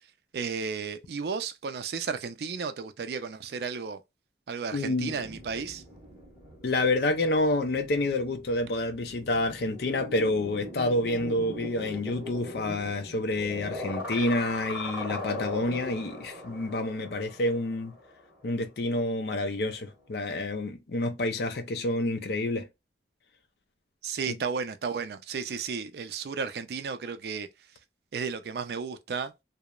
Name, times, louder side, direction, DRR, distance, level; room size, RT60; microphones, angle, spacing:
voice 1, 0.3-4.0 4.5-5.8 24.0-27.5 28.1-29.3, right 5 dB, 65° right, 0.4 m, -33 dB
voice 2, 4.7-5.2 6.6-18.0 18.4-22.7 24.3-24.4, left 2 dB, 60° left, 0.4 m, -28 dB
sound 1, 5.0-19.0 19.3-20.7, left 1 dB, 10° right, 1.1 m, -41 dB
2.9 x 2.0 x 2.2 m
head